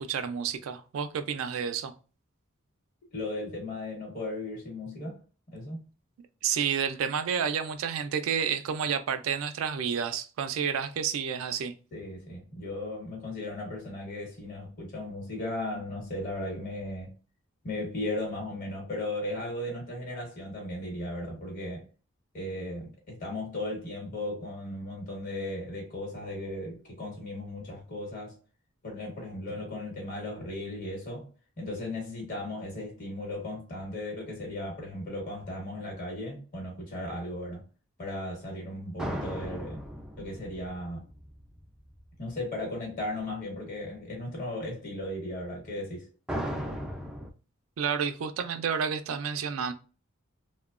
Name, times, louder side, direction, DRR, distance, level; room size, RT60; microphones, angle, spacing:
voice 1, 0.0-1.9 6.4-11.7 47.8-49.7, right 7 dB, 85° right, 0.4 m, -30 dB
voice 2, 3.1-5.2 5.5-5.8 11.9-17.1 17.6-21.9 22.3-28.4 28.8-31.3 31.6-37.7 38.0-39.8 40.2-41.1 42.2-46.1, left 1 dB, 45° left, 1.0 m, -36 dB
sound 1, 39.0-42.0 46.3-47.3, equal, 5° right, 0.3 m, -36 dB
2.9 x 2.1 x 2.3 m
head